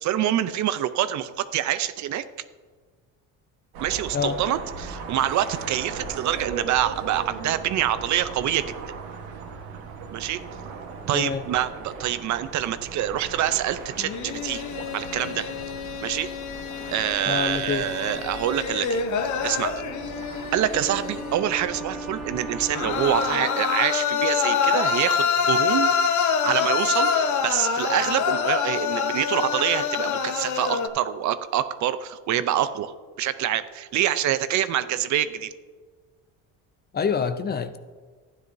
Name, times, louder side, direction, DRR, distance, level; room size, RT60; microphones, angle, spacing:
voice 1, 0.0-2.2 3.8-8.8 10.1-10.4 11.1-14.6 14.9-15.5 16.0-16.3 16.9-19.0 19.4-19.7 20.5-25.9 26.4-35.5, right 11 dB, 55° right, 13 dB, 0.6 m, -26 dB
sound 1, 3.7-23.3, right 4 dB, 85° right, 1.3 m, -39 dB
voice 2, 11.1-11.4 17.2-17.9 36.9-37.8, left 6 dB, 30° left, 11 dB, 0.5 m, -26 dB
sound 2, 14.0-21.4 22.7-30.9, left 6 dB, 55° left, 0.9 m, -26 dB
Wind instrument woodwind instrument, 19.5-24.9, equal, ahead, 1.0 m, -38 dB
12.0 x 10.0 x 2.7 m, 1.5 s
cardioid pair, 100°, 34 cm